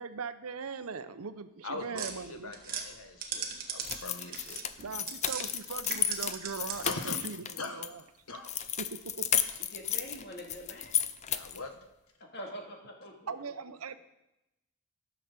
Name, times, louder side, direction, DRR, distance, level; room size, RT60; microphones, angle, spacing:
voice 1, 0.0-2.5 4.8-8.0 8.8-9.3 13.3-14.0, right 5 dB, 85° right, 11 dB, 0.7 m, -40 dB
voice 2, 1.6-4.6 6.8-7.2 7.6-7.9 8.3-8.5 11.3-11.7, left 2 dB, 85° left, 5 dB, 1.5 m, -41 dB
sound 1, 1.9-5.5 5.8-7.0, right 7 dB, 40° right, 1.2 m, -39 dB
sound 2, 3.8-7.9 8.4-11.6, left 10 dB, 30° left, 0.4 m, -33 dB
voice 3, 9.6-11.0 12.2-13.3, equal, 50° left, 1 dB, 2.1 m, -45 dB
13.0 x 5.9 x 6.7 m, 0.92 s
head